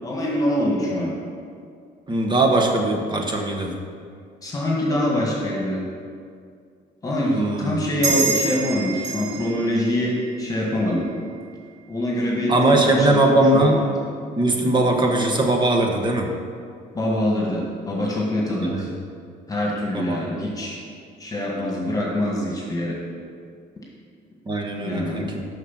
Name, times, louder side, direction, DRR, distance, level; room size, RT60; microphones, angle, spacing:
voice 1, 0.0-1.1 4.4-5.8 7.0-11.0 11.9-13.2 13.5-14.0 16.9-18.9 19.5-20.8 21.2-23.0 24.8-25.2, left 1 dB, 20° left, -3 dB, 1.7 m, -24 dB
voice 2, 2.1-3.7 7.3-7.7 12.5-13.8 14.3-16.3 18.7-18.9 19.9-20.5 24.5-25.4, right 2 dB, 25° right, 2 dB, 1.1 m, -20 dB
sound 1, 8.0-11.1, right 4 dB, 75° right, 2.2 m, -28 dB
6.5 x 6.2 x 5.8 m, 2.2 s
cardioid pair, 110°, 17 cm